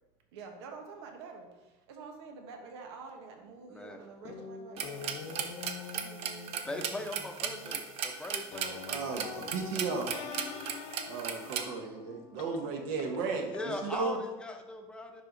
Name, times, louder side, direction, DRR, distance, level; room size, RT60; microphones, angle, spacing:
voice 1, 0.3-8.4 12.5-13.0, right 4 dB, 90° right, 3 dB, 1.4 m, -49 dB
voice 2, 3.7-4.0 6.6-9.1 13.5-15.2, left 2 dB, 5° left, 4 dB, 0.8 m, -40 dB
sound 1, 4.2-13.9, left 7 dB, 50° left, 0.9 m, -45 dB
sound 2, 4.8-11.7, right 8 dB, 50° right, 0.8 m, -36 dB
voice 3, 8.7-10.2 11.1-14.2, right 4 dB, 65° right, 3 dB, 1.3 m, -35 dB
10.5 x 4.7 x 3.9 m, 1.1 s
cardioid pair, 145°, 13 cm